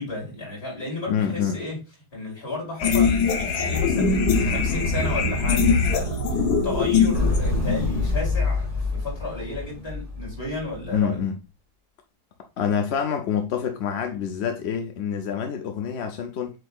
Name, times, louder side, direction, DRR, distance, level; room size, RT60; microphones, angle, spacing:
voice 1, 0.0-1.8 2.1-11.2, left 2 dB, 40° left, 2.5 m, -33 dB
voice 2, 1.1-1.6 10.9-11.3 12.6-16.6, left 7 dB, 60° left, 0.7 m, -26 dB
sound 1, 2.8-8.2, left 6 dB, 85° left, 1.3 m, -22 dB
sound 2, 3.9-7.6, right 8 dB, 70° right, 0.9 m, -32 dB
Motorcycle, 7.1-11.0, left 3 dB, 25° right, 1.1 m, -26 dB
7.8 x 2.8 x 2.3 m
omnidirectional pair, 1.7 m